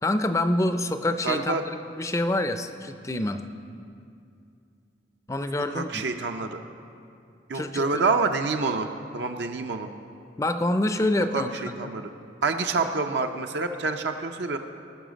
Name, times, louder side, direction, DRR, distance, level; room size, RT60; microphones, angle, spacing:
voice 1, 0.0-3.5 5.3-6.0 7.5-8.0 10.4-12.0, left 1 dB, 15° left, 9 dB, 0.4 m, -27 dB
voice 2, 1.2-1.6 5.7-6.6 7.5-8.9 9.1-9.9 11.3-11.4 11.8-12.1 12.4-14.6, right 4 dB, 65° right, 5 dB, 0.5 m, -27 dB
19.0 x 6.3 x 5.1 m, 2.5 s
head